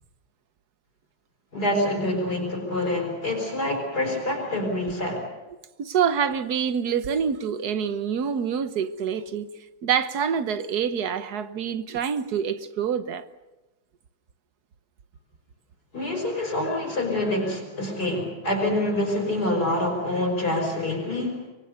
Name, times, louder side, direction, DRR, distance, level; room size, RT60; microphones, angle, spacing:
voice 1, 1.5-5.3 15.9-21.4, left 1 dB, 45° left, 5.9 m, -26 dB
voice 2, 5.8-9.5 9.8-13.2, right 7 dB, 55° right, 1.4 m, -26 dB
25.0 x 24.0 x 6.8 m
omnidirectional pair, 2.3 m